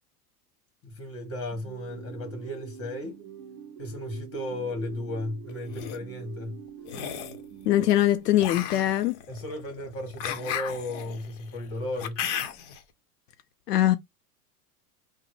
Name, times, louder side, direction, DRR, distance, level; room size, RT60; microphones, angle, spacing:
voice 1, 0.8-3.2 3.8-6.6 9.3-12.2, left 1 dB, 30° left, 1.9 m, -35 dB
sound 1, 1.5-8.7, right 8 dB, 40° right, 0.7 m, -45 dB
sound 2, 5.5-6.0 6.8-7.4 8.4-12.8, left 9 dB, 55° left, 1.0 m, -35 dB
voice 2, 7.7-9.1 13.7-14.0, left 13 dB, 80° left, 0.6 m, -22 dB
3.7 x 2.2 x 3.2 m
hypercardioid pair, 95°, 46 cm